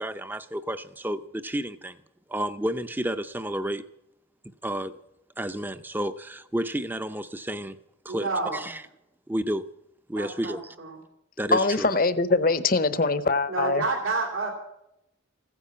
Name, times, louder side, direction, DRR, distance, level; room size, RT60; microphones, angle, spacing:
voice 1, 0.0-2.0 2.3-3.8 4.6-5.0 5.4-7.8 8.0-8.8 9.3-9.7 10.1-10.8 11.4-11.9, right 1 dB, 10° right, 0.6 m, -31 dB
voice 2, 8.1-8.6 10.2-11.0 13.5-14.5, right 3 dB, 80° right, 3.0 m, -29 dB
voice 3, 11.5-13.8, left 3 dB, 45° left, 0.8 m, -23 dB
15.5 x 10.0 x 8.6 m
head